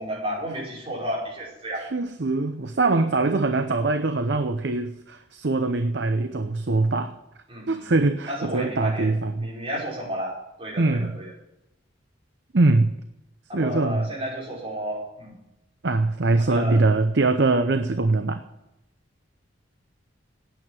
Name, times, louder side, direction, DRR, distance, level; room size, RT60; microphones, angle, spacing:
voice 1, 0.0-1.9 7.5-7.9 8.3-9.1 9.4-11.3 13.5-15.3 16.3-16.8, equal, 30° right, -6 dB, 5.2 m, -32 dB
voice 2, 1.8-7.1 7.7-9.5 10.8-11.1 12.5-12.9 13.5-14.0 15.8-18.4, right 3 dB, 60° right, 8 dB, 0.7 m, -22 dB
9.1 x 8.9 x 9.0 m, 0.90 s
head